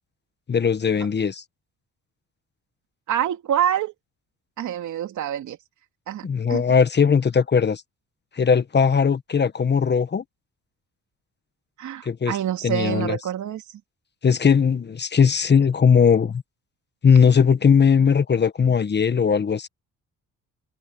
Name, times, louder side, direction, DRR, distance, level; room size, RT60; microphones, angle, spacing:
voice 1, 0.5-1.4 6.2-7.8 8.4-10.2 12.0-12.4 12.6-13.2 14.2-16.4 17.0-19.7, left 6 dB, 35° left, 1.3 m, -19 dB
voice 2, 3.1-3.9 4.6-5.6 6.1-6.6 11.8-13.8, right 10 dB, 75° right, 3.2 m, -26 dB
cardioid pair, 90°, 30 cm